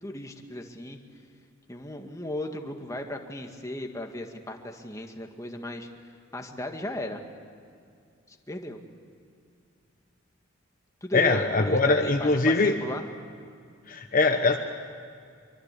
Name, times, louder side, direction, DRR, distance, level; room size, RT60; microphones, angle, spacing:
voice 1, 0.0-1.0 1.7-5.9 6.3-7.2 8.3-8.8 11.0-13.0, left 1 dB, 15° left, 3 dB, 1.8 m, -35 dB
voice 2, 11.1-12.7 13.9-14.6, left 3 dB, 45° left, 5 dB, 1.1 m, -22 dB
24.0 x 24.0 x 8.4 m, 2.3 s
head